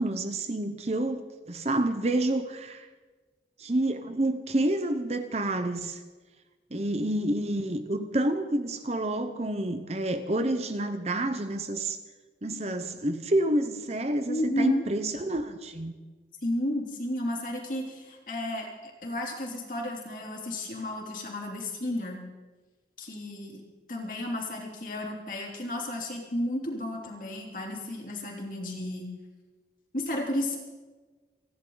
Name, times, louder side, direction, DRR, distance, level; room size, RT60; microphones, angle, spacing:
voice 1, 0.0-2.9 3.6-6.0 6.7-12.0 12.4-15.9, right 1 dB, 35° right, 9 dB, 0.9 m, -28 dB
voice 2, 14.3-14.8 16.4-22.2 23.0-23.6 23.9-29.1 29.9-30.6, left 1 dB, 50° left, 0 dB, 3.3 m, -32 dB
30.0 x 11.0 x 4.0 m, 1.3 s
head